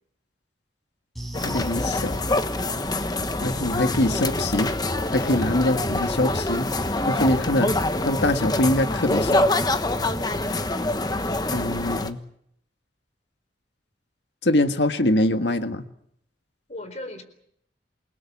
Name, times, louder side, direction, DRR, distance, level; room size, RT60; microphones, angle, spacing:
sound 1, 1.2-9.8 10.1-10.3 10.7-10.8, equal, ahead, 6.0 m, -43 dB
sound 2, 1.3-12.1, left 2 dB, 25° left, 1.2 m, -25 dB
voice 1, 1.4-2.3 3.4-4.7 5.1-6.7 7.1-7.7 8.0-9.5 11.5-12.2 14.4-15.8, left 1 dB, 75° left, 8 dB, 1.6 m, -23 dB
voice 2, 10.2-10.5 16.7-17.2, left 1 dB, 40° left, 9 dB, 4.1 m, -38 dB
28.5 x 19.5 x 7.3 m, 0.71 s
head